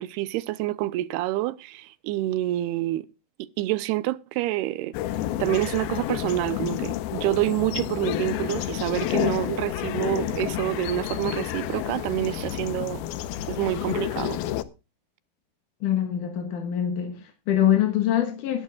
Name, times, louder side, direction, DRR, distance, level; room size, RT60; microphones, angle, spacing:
voice 1, 0.0-3.1 3.4-4.9 5.4-13.0 13.5-14.4, right 15 dB, 85° right, 2.8 m, -27 dB
sound 1, 4.9-14.6, left 13 dB, 80° left, 2.7 m, -30 dB
voice 2, 15.8-18.6, left 10 dB, 60° left, 2.7 m, -24 dB
20.0 x 12.0 x 2.4 m
omnidirectional pair, 4.5 m